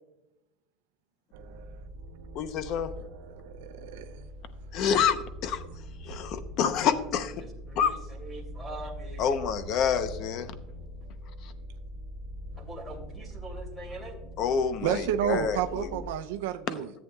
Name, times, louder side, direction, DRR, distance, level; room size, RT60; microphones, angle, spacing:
sound 1, 1.3-16.1, equal, 70° right, 1.0 m, -43 dB
voice 1, 2.3-2.9 4.7-5.2 5.4-5.6 6.1-7.3 7.8-7.9 9.2-10.5 14.4-15.9, left 7 dB, 50° left, 12 dB, 0.8 m, -27 dB
voice 2, 3.6-4.3 5.7-5.8 14.8-16.9, right 10 dB, 90° right, 7 dB, 0.5 m, -30 dB
voice 3, 6.6-7.0 7.4-9.4 12.6-14.2, right 2 dB, ahead, 2 dB, 2.5 m, -43 dB
14.0 x 8.3 x 2.3 m, 0.96 s
supercardioid pair, 145°, 0 cm